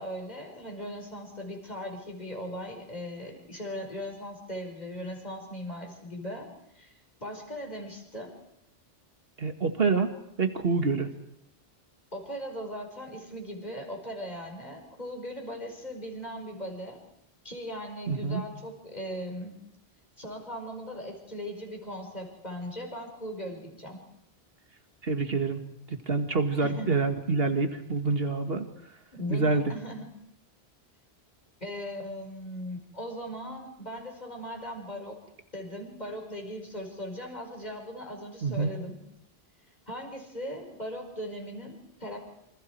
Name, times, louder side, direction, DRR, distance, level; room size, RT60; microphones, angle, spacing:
voice 1, 0.0-6.5 6.7-8.3 12.1-17.0 17.4-19.6 20.2-24.0 26.6-27.0 29.1-30.1 31.6-35.2 35.5-39.0 39.9-42.2, equal, 40° left, 2 dB, 5.3 m, -39 dB
voice 2, 9.4-10.1 10.4-11.1 18.1-18.4 25.0-25.6 26.1-28.6 29.3-29.7 38.4-38.7, right 4 dB, 65° right, 6 dB, 2.2 m, -26 dB
28.0 x 25.5 x 4.7 m, 0.78 s
omnidirectional pair, 1.1 m